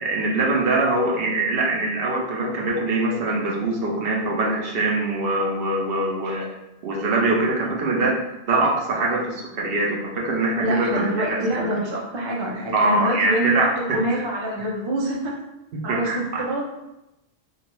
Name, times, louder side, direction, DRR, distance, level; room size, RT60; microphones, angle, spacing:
voice 1, 0.0-6.5 6.8-8.2 8.5-11.7 12.7-14.2 15.7-16.4, right 2 dB, 65° right, -2 dB, 0.8 m, -23 dB
voice 2, 10.6-13.6 13.9-15.3 15.8-16.1 16.4-16.6, right 1 dB, 40° right, -2 dB, 0.4 m, -25 dB
2.5 x 2.2 x 3.0 m, 0.92 s
omnidirectional pair, 1.1 m